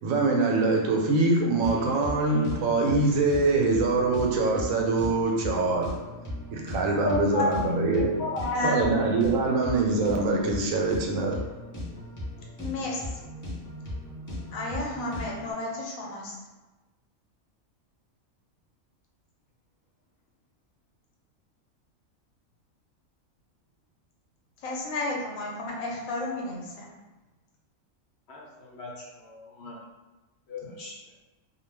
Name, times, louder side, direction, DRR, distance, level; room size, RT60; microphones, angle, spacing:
voice 1, 0.0-6.0 6.5-8.2 8.6-11.4, right 3 dB, 80° right, 0 dB, 1.0 m, -24 dB
sound 1, 1.6-15.5, left 1 dB, 20° left, 0.5 m, -38 dB
voice 2, 7.0-7.5 8.2-8.8 12.6-13.1 14.5-16.4 24.6-26.9, left 2 dB, 85° left, -1 dB, 1.1 m, -31 dB
voice 3, 28.3-29.8 30.5-30.9, left 3 dB, 60° left, -4 dB, 0.9 m, -42 dB
2.4 x 2.2 x 3.2 m, 1.1 s
omnidirectional pair, 1.4 m